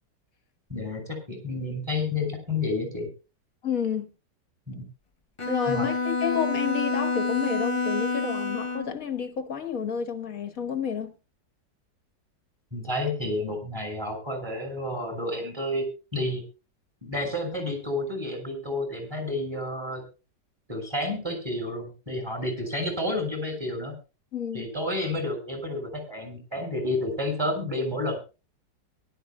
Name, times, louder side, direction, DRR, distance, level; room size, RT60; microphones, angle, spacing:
voice 1, 0.7-3.1 4.7-4.8 5.7-5.9 12.7-15.9 16.1-16.4 17.0-20.0 20.7-23.9 24.5-28.2, left 1 dB, 15° right, 5.8 m, -30 dB
voice 2, 3.6-4.1 5.5-11.1 24.3-24.7, left 7 dB, 50° left, 1.8 m, -30 dB
Bowed string instrument, 5.4-9.0, left 4 dB, 20° left, 1.1 m, -28 dB
23.0 x 11.5 x 2.2 m
omnidirectional pair, 1.9 m